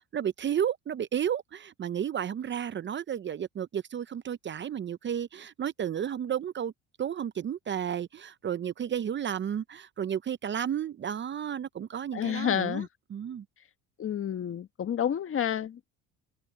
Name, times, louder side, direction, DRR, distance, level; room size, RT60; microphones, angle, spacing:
voice 1, 0.0-6.7 7.0-13.4, right 9 dB, 35° right, 0.7 m, -32 dB
voice 2, 12.1-12.9 14.0-15.8, left 9 dB, 40° left, 1.4 m, -29 dB
supercardioid pair, 90°, 34 cm